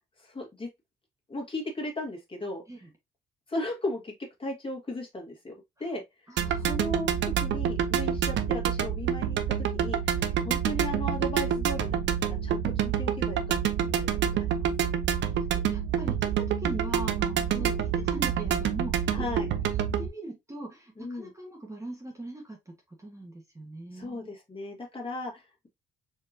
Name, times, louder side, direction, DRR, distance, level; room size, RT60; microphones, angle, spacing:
voice 1, 0.2-0.7 1.3-2.6 3.5-4.1 4.4-5.5 5.8-6.3 6.7-13.6 13.8-14.1 14.3-14.5 17.5-17.8 19.1-19.5 21.0-21.3 23.9-25.7, left 1 dB, 25° left, 1.7 m, -36 dB
voice 2, 6.3-6.7 10.2-10.5 15.3-19.3 20.0-24.3, right 2 dB, 15° right, 1.2 m, -41 dB
sound 1, 6.4-20.1, right 8 dB, 65° right, 0.6 m, -27 dB
4.4 x 2.8 x 2.6 m
cardioid pair, 90°, 20 cm